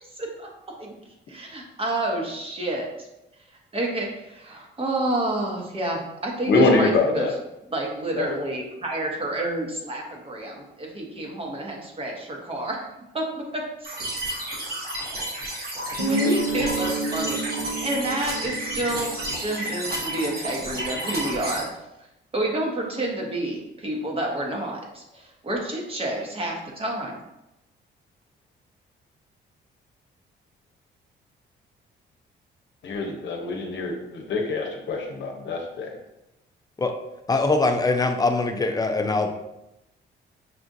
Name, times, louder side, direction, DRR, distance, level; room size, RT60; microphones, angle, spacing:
voice 1, 0.1-0.5 0.8-0.9 1.3-3.1 3.7-7.3 7.7-12.8 13.1-14.0 16.1-21.7 22.3-27.2, right 1 dB, 30° right, 0 dB, 1.1 m, -29 dB
voice 2, 6.5-7.3 8.2-8.3 32.8-35.9, left 3 dB, 65° left, 2 dB, 0.8 m, -24 dB
sound 1, 13.8-21.6, right 1 dB, 50° right, 1.2 m, -31 dB
Guitar, 16.0-20.6, right 2 dB, 70° right, 1.1 m, -30 dB
voice 3, 37.3-39.3, left 3 dB, 20° left, 5 dB, 0.5 m, -22 dB
6.0 x 2.4 x 2.6 m, 0.91 s
cardioid pair, 90°, 20 cm